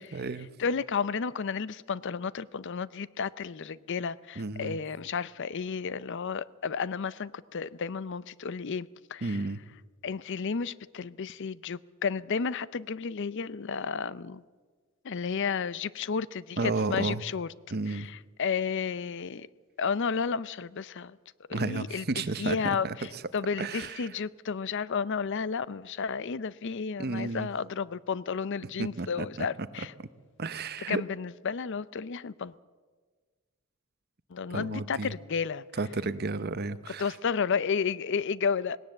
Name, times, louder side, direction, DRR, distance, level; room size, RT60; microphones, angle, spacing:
voice 1, 0.0-0.5 4.4-4.8 9.2-9.6 16.6-17.2 17.7-18.1 21.5-23.2 23.6-24.1 27.0-27.5 28.6-29.5 29.8-30.1 30.4-31.0 34.5-35.1 35.7-37.2, right 3 dB, 45° right, 0.8 m, -32 dB
voice 2, 0.6-9.4 10.0-14.4 15.0-17.5 17.9-18.1 18.4-19.5 19.8-21.2 21.5-22.0 22.4-23.1 23.3-29.9 30.9-32.5 34.3-35.6 37.0-38.8, left 6 dB, 55° left, 0.5 m, -32 dB
19.0 x 17.5 x 7.8 m
head